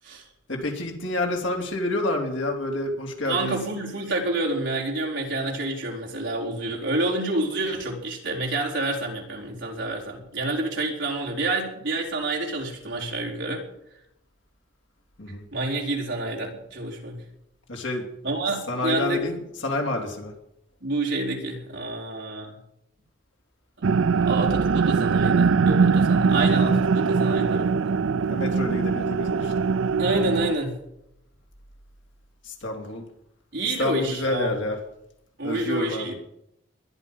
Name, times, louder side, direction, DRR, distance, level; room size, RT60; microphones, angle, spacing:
voice 1, 0.5-3.6 15.2-15.4 17.7-18.1 18.7-20.3 28.3-29.5 32.4-33.0 33.8-34.8 35.4-36.1, left 2 dB, 70° left, 2 dB, 3.4 m, -28 dB
voice 2, 3.2-13.6 15.5-17.2 18.2-19.2 20.8-22.6 23.8-28.0 30.0-30.8 33.5-34.6 35.4-36.1, right 2 dB, 65° right, -2 dB, 4.3 m, -28 dB
sound 1, 23.8-30.6, right 5 dB, 85° right, 0.5 m, -21 dB
21.0 x 11.5 x 5.6 m, 0.81 s
head